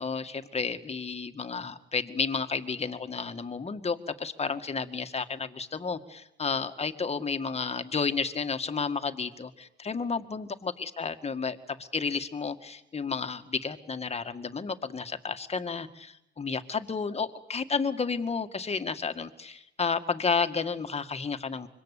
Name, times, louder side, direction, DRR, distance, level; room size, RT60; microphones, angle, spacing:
voice 1, 0.0-21.7, left 5 dB, 30° left, 9 dB, 2.0 m, -32 dB
25.5 x 23.0 x 8.5 m, 0.80 s
cardioid pair, 90°, 20 cm